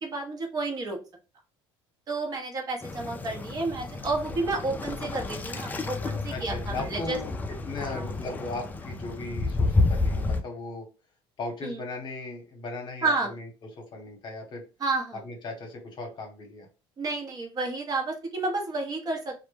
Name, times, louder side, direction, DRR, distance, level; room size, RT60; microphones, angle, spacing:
voice 1, 0.0-1.0 2.1-7.2 7.8-8.1 11.6-11.8 13.0-13.3 14.8-15.2 17.0-19.4, right 3 dB, 35° right, 1 dB, 0.7 m, -31 dB
Waves surf, 2.8-10.4, left 3 dB, 15° left, 0.3 m, -30 dB
voice 2, 6.3-10.9 11.4-13.5 13.8-14.6 15.2-16.7, left 3 dB, 45° left, 3 dB, 0.9 m, -37 dB
2.1 x 2.1 x 3.1 m, 0.31 s
cardioid pair, 115°, 11 cm